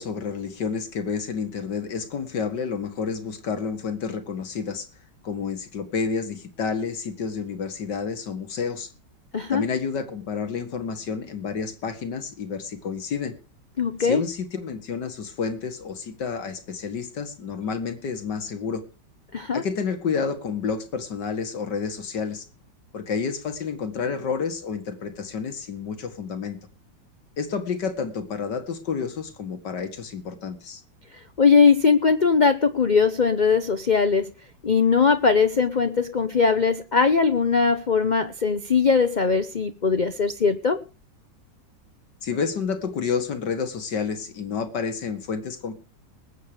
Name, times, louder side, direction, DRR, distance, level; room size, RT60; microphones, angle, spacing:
voice 1, 0.0-4.9 5.2-8.9 9.5-13.4 14.0-18.8 19.5-22.5 22.9-26.6 27.4-30.8 42.2-45.7, left 5 dB, 65° left, 9 dB, 2.5 m, -30 dB
voice 2, 13.8-14.2 19.3-19.6 31.4-34.3 34.6-40.8, left 5 dB, 45° left, 10 dB, 0.6 m, -20 dB
20.5 x 8.4 x 5.1 m, 0.35 s
omnidirectional pair, 2.0 m